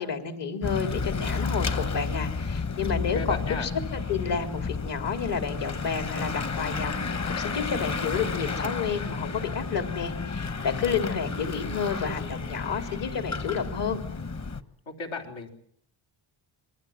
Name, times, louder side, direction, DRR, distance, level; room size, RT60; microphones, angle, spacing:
voice 1, 0.0-14.0, left 6 dB, 60° left, 7 dB, 4.0 m, -30 dB
Bicycle / Mechanisms, 0.6-14.6, left 4 dB, 35° left, 1.5 m, -32 dB
voice 2, 3.1-3.7 10.5-10.9 14.9-15.5, left 4 dB, 80° left, 3 dB, 4.7 m, -36 dB
27.5 x 22.0 x 7.6 m, 0.65 s
cardioid pair, 120°, 47 cm